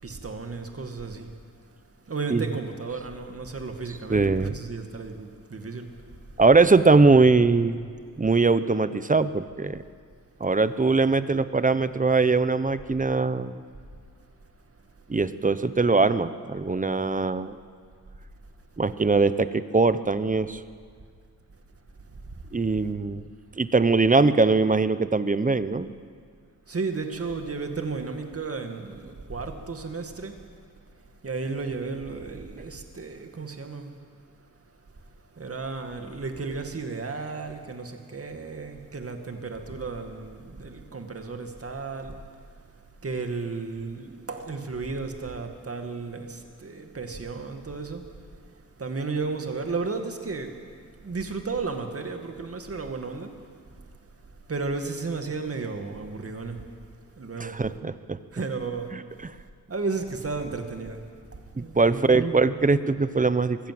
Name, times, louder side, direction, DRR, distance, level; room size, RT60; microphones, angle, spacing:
voice 1, 0.0-1.3 2.1-5.9 26.7-30.4 31.2-33.9 35.4-42.2 43.0-48.0 48.8-50.6 51.0-53.3 54.5-56.6 57.2-57.5 58.3-58.9 59.7-61.0 61.6-62.4, right 4 dB, 45° right, 5 dB, 2.1 m, -33 dB
voice 2, 4.1-4.6 6.4-7.9 8.2-9.8 10.4-13.5 15.1-17.6 18.8-20.6 22.5-23.2 23.6-25.9 57.4-58.2 59.2-59.3 61.6-63.7, right 3 dB, 25° right, 13 dB, 0.8 m, -21 dB
23.5 x 15.5 x 7.8 m, 2.1 s
wide cardioid pair, 110°, 33 cm